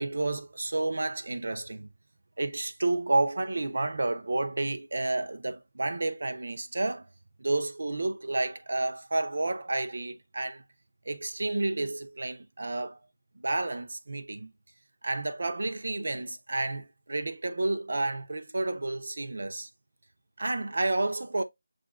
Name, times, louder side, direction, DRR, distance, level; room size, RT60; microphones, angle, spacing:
voice 1, 0.0-1.9 2.4-7.1 7.4-10.6 11.1-13.0 13.4-14.5 15.0-19.7 20.4-21.4, right 2 dB, 65° right, 0.8 m, -30 dB
7.7 x 2.6 x 2.4 m
figure-of-eight pair, 170°, 0 cm